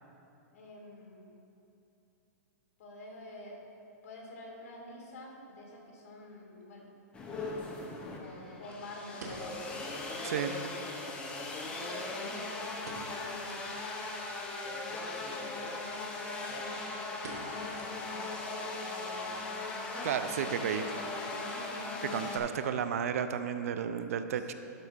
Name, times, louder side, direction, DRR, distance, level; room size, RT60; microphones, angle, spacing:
voice 1, 0.5-1.3 2.8-3.6 4.0-6.9 8.0-9.9 10.9-11.1 11.6-13.8 14.7-15.1 15.4-16.9 17.9-19.4 20.5-21.1 21.4-22.3, left 1 dB, 60° left, -1 dB, 1.9 m, -48 dB
sound 1, 6.6-6.7 8.7-10.0 10.4-10.5 10.7-10.8 11.5-12.3 12.8-13.2 13.4-13.7 14.2-14.3 15.3-15.5 15.9-16.0 16.3-16.7 17.2-18.3 18.6-18.7 19.3-19.6 19.9-20.0, right 2 dB, 75° right, 1.4 m, -48 dB
sound 2, 7.1-22.4, left 3 dB, 10° left, 0.7 m, -39 dB
voice 2, 20.0-20.8 22.1-24.5, right 8 dB, 60° right, 10 dB, 0.4 m, -32 dB
12.0 x 4.0 x 5.1 m, 2.8 s
hypercardioid pair, 165°, 9 cm